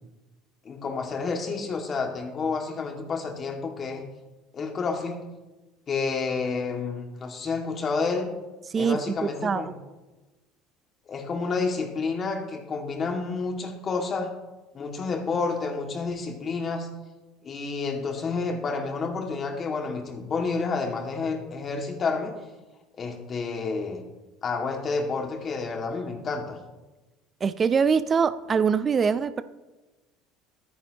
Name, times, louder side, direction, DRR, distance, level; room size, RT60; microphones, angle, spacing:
voice 1, 0.6-4.1 4.5-5.2 5.9-8.3 8.8-9.7 11.1-14.3 14.7-16.9 17.4-22.3 23.0-24.0 24.4-26.6, left 4 dB, 40° left, 3 dB, 2.1 m, -29 dB
voice 2, 8.7-9.7 27.4-29.4, right 6 dB, 35° right, 13 dB, 0.5 m, -24 dB
13.0 x 9.7 x 3.0 m, 1.1 s
hypercardioid pair, 80°, 0 cm